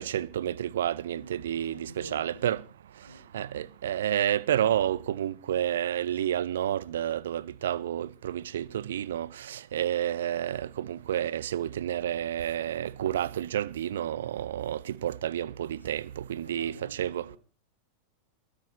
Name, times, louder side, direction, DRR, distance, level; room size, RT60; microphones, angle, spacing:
voice 1, 0.0-2.6 3.3-16.7 17.0-17.2, right 11 dB, 60° right, 0.6 m, -30 dB
voice 2, 1.1-2.6 3.0-3.3 6.1-6.4 13.9-14.4 15.8-17.4, right 1 dB, 85° right, 2.1 m, -50 dB
22.0 x 10.0 x 4.3 m
figure-of-eight pair, 90°, 0 cm